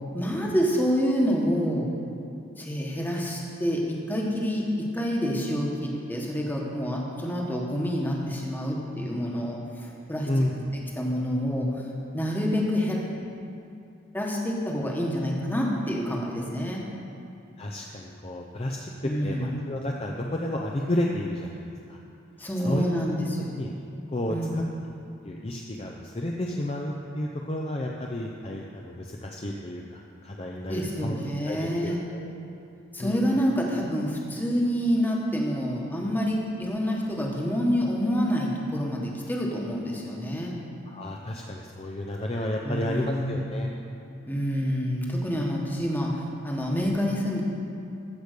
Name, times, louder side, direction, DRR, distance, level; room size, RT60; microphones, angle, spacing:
voice 1, 0.1-1.9 2.6-9.6 10.1-11.7 12.1-13.0 14.1-16.8 19.0-19.6 22.4-23.5 24.3-24.5 30.7-32.0 32.9-40.5 42.6-43.4 44.3-47.4, equal, 10° left, -2 dB, 1.3 m, -27 dB
voice 2, 17.6-22.0 22.6-22.9 23.6-23.7 24.1-24.6 25.2-31.1 31.4-32.3 33.0-33.4 40.9-43.7, left 1 dB, 30° left, 0 dB, 0.6 m, -31 dB
14.5 x 5.1 x 6.6 m, 2.6 s
head